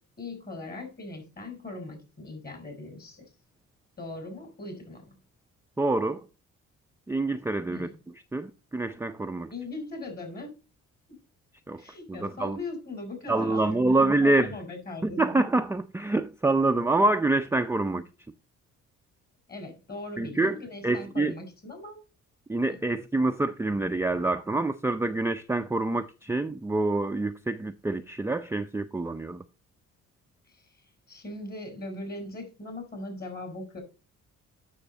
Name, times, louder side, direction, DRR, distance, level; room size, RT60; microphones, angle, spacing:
voice 1, 0.2-3.3 4.0-5.2 7.7-8.0 9.5-10.6 11.7-15.5 19.5-22.0 30.5-30.6 31.1-33.8, left 2 dB, 30° left, 4.3 m, -39 dB
voice 2, 5.8-6.3 7.1-7.9 8.3-9.5 11.7-11.8 12.1-12.6 13.3-14.5 15.0-18.1 20.2-21.3 22.5-29.4, right 2 dB, 10° right, 0.5 m, -26 dB
8.9 x 6.5 x 4.0 m
cardioid pair, 90°, 30 cm